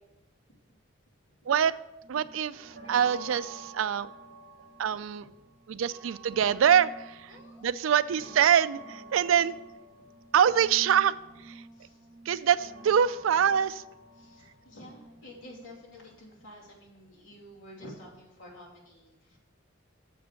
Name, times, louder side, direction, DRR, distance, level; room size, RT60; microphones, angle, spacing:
sound 1, 2.0-16.2, right 2 dB, 50° right, 1.6 m, -49 dB
voice 1, 2.1-4.1 4.8-5.3 5.7-7.3 7.6-9.6 10.3-11.1 11.4-11.6 12.3-13.8, right 8 dB, 80° right, 16 dB, 0.4 m, -25 dB
voice 2, 7.3-7.9 10.0-10.1 11.7-12.1 13.3-13.4 14.2-19.4, left 1 dB, 85° left, -4 dB, 2.7 m, -50 dB
7.1 x 5.1 x 6.9 m, 0.96 s
head